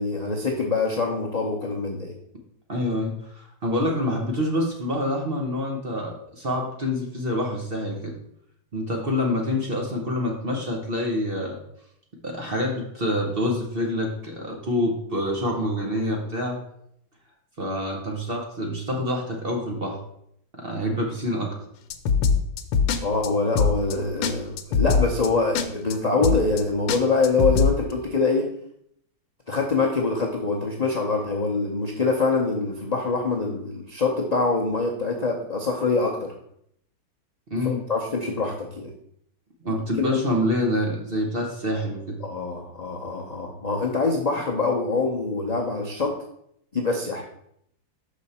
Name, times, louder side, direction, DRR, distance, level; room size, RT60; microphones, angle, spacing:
voice 1, 0.0-2.1 23.0-28.5 29.5-36.3 37.6-38.9 40.0-40.2 42.2-46.1 46.7-47.2, left 3 dB, 55° left, -2 dB, 0.4 m, -24 dB
voice 2, 2.7-8.1 8.7-11.6 12.2-16.6 17.6-20.0 20.5-21.6 37.5-37.8 39.6-42.2, left 1 dB, 40° right, 0 dB, 0.9 m, -26 dB
sound 1, 21.9-23.0 23.2-23.3 23.6-23.9 24.2-24.3 24.6-25.3 25.5-25.7 25.9-26.0 26.2-26.6 26.9-27.7, left 5 dB, 80° left, 1.3 m, -21 dB
6.2 x 5.1 x 4.2 m, 0.72 s
omnidirectional pair, 2.1 m